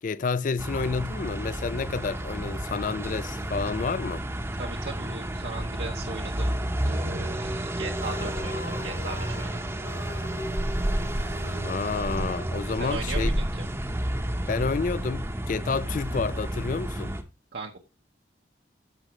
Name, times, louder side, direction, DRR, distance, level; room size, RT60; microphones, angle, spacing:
voice 1, 0.0-4.2 11.6-13.3 14.5-17.2, left 4 dB, 45° left, 0.4 m, -30 dB
sound 1, 0.6-17.2, right 1 dB, 15° right, 0.9 m, -31 dB
voice 2, 4.5-9.8 12.8-13.7 17.5-17.8, right 3 dB, 65° right, 0.9 m, -38 dB
sound 2, 7.9-12.8, left 3 dB, 85° left, 1.4 m, -43 dB
14.0 x 4.9 x 3.0 m
head